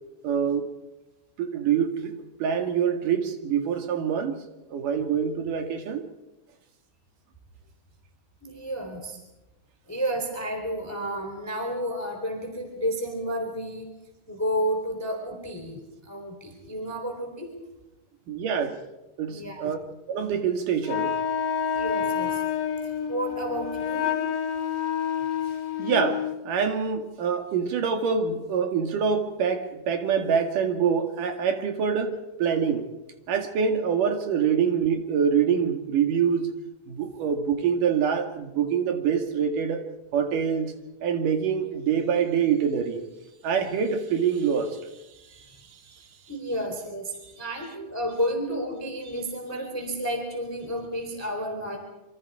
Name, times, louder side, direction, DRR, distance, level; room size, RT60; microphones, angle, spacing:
voice 1, 0.2-0.7 1.4-2.1 2.4-4.4 4.7-6.1 18.3-18.8 19.2-19.8 20.1-21.1 25.8-32.9 33.3-36.5 36.9-39.8 40.1-40.7 41.0-43.0 43.4-44.8, right 7 dB, 85° right, 3.6 m, -25 dB
voice 2, 8.4-9.2 9.9-13.9 14.3-17.6 19.3-19.7 21.7-22.4 22.8-24.2 46.3-51.8, equal, 5° left, 3.4 m, -31 dB
Wind instrument woodwind instrument, 20.8-26.4, left 8 dB, 60° left, 2.6 m, -28 dB
27.0 x 24.5 x 4.9 m
omnidirectional pair, 3.7 m